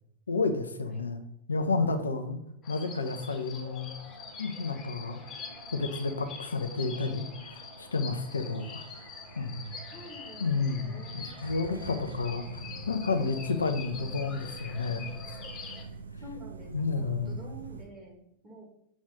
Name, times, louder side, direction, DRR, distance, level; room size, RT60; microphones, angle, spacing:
voice 1, 0.3-1.2 1.5-2.4 2.7-3.9 4.4-5.2 5.7-8.8 9.4-9.7 10.4-12.5 12.9-15.1 16.7-17.4, left 4 dB, 75° left, 7 dB, 0.5 m, -31 dB
sound 1, 2.6-15.8, left 5 dB, 30° left, 1.0 m, -45 dB
sound 2, 3.4-17.8, right 3 dB, 80° right, 0.6 m, -46 dB
voice 2, 9.9-11.4 12.0-12.5 15.9-18.6, right 1 dB, 25° right, -1 dB, 1.9 m, -48 dB
6.3 x 3.1 x 4.9 m, 0.76 s
figure-of-eight pair, 90°, 0 cm